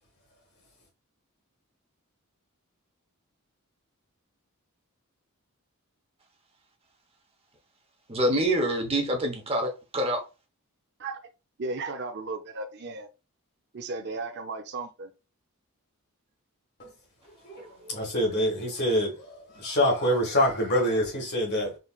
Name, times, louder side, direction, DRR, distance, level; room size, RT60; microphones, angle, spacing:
voice 1, 8.1-10.2 17.6-17.9, right 1 dB, 25° right, 0.9 m, -27 dB
voice 2, 11.6-13.1 13.7-15.1, right 3 dB, 50° right, 0.5 m, -35 dB
voice 3, 17.4-21.8, equal, 50° left, 1.6 m, -26 dB
4.0 x 3.2 x 2.3 m
head